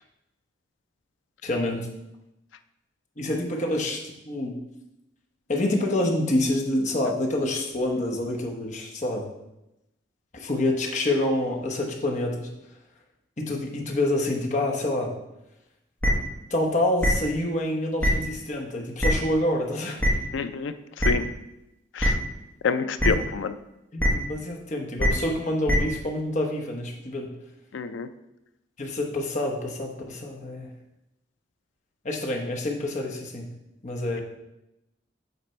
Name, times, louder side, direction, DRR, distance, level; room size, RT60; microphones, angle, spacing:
voice 1, 1.4-1.9 3.2-4.6 5.5-9.3 10.3-12.5 13.4-15.2 16.5-20.0 23.0-23.2 23.9-27.3 28.8-30.7 32.0-33.5 33.8-34.2, left 1 dB, 40° left, 1 dB, 1.0 m, -27 dB
sound 1, 16.0-16.1 17.0-17.1 18.0-18.1 19.0-19.1 20.0-20.1 21.0-21.1 22.0-22.1 23.0-23.1 24.0-24.1 25.0-25.1 25.7-25.8, equal, 10° left, 1.1 m, -20 dB
voice 2, 20.3-21.3 21.9-22.2 22.6-23.6 27.7-28.1, left 5 dB, 85° left, 11 dB, 0.4 m, -28 dB
8.0 x 3.3 x 4.4 m, 0.90 s
head